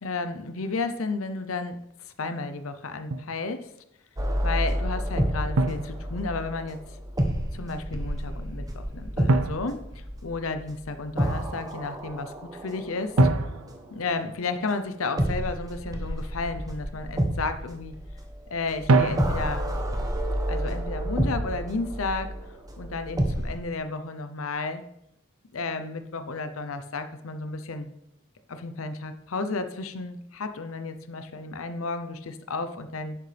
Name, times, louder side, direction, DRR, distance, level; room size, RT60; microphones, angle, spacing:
voice 1, 0.0-1.8 2.0-3.7 4.4-6.8 7.5-13.2 13.9-18.0 18.5-19.7 20.5-22.4 22.8-24.8 25.5-27.9 28.5-33.2, left 3 dB, 80° left, 9 dB, 0.7 m, -32 dB
Drum, 3.1-3.4 5.6-6.7 9.3-10.7 13.2-14.9 18.9-19.8, right 3 dB, 90° right, 0.6 m, -27 dB
sound 1, 4.2-14.0 15.2-23.6, equal, 20° right, 0.9 m, -30 dB
10.5 x 6.8 x 3.4 m, 0.79 s
head